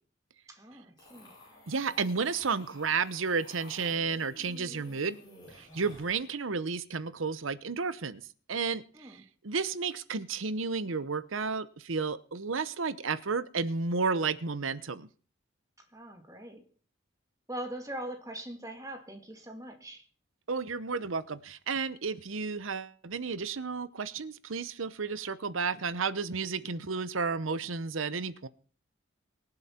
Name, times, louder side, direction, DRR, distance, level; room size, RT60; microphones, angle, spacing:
voice 1, 0.5-1.3 8.9-9.2 15.9-16.6 17.5-20.0, right 1 dB, 15° right, 5 dB, 2.1 m, -42 dB
sound 1, 1.0-6.3, left 1 dB, 20° left, 5.7 m, -52 dB
voice 2, 1.7-5.2 5.6-8.2 8.5-15.1 20.5-28.5, right 4 dB, 90° right, 15 dB, 0.9 m, -32 dB
23.5 x 7.9 x 4.4 m, 0.42 s
head